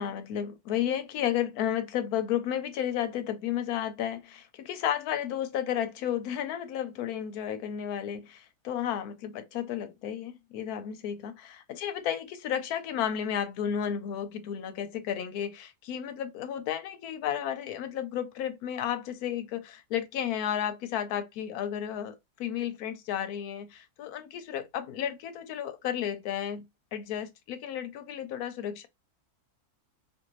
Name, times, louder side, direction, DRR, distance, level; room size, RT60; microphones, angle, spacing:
voice 1, 0.0-26.6 26.9-28.9, left 10 dB, 75° left, 1.1 m, -33 dB
2.6 x 2.6 x 3.0 m
omnidirectional pair, 1.7 m